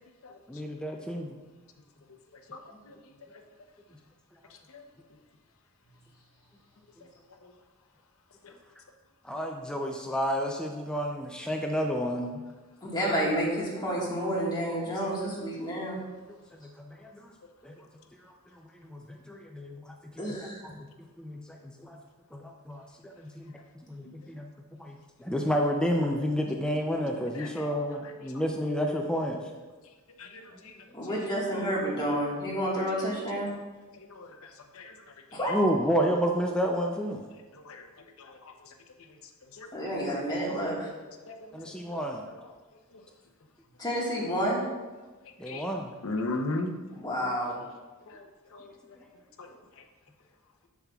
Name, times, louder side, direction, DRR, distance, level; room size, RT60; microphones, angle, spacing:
voice 1, 0.5-1.4 9.2-12.4 16.5-17.3 17.6-17.9 18.2-20.9 21.2-22.0 22.3-23.6 23.9-24.5 24.8-29.5 35.5-37.3 41.5-42.2 45.4-46.0 49.0-49.1, equal, 5° left, 1 dB, 0.4 m, -31 dB
voice 2, 12.8-16.0 20.2-20.6 30.9-33.6 35.3-35.7 39.7-40.9 43.8-44.6 46.9-47.6, equal, 20° left, -5 dB, 1.6 m, -30 dB
voice 3, 27.4-27.7 30.2-30.7 34.0-34.9 37.5-37.8 38.2-38.4 39.6-39.7 41.3-41.4 41.7-41.8 45.5-45.6 46.0-46.8 48.1-48.3 48.5-48.7 49.4-49.5, left 2 dB, 65° left, 4 dB, 0.7 m, -37 dB
7.2 x 7.1 x 2.3 m, 1.3 s
head